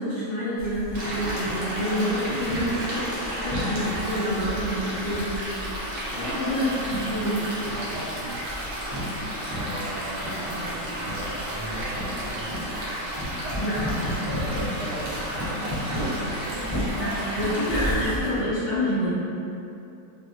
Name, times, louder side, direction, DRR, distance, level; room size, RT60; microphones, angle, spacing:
voice 1, 0.0-7.4 13.6-13.8 17.0-19.1, equal, 50° left, -12 dB, 1.1 m, -28 dB
sound 1, 0.6-18.4, equal, 10° right, 1.0 m, -34 dB
Stream, 0.9-17.9, equal, 60° right, 0.6 m, -33 dB
voice 2, 6.1-6.9 7.1-8.8 9.5-12.7 13.4-13.7 14.2-15.9 16.3-17.4, right 1 dB, 85° right, -4 dB, 1.2 m, -38 dB
3.0 x 2.2 x 3.0 m, 2.7 s
omnidirectional pair, 1.8 m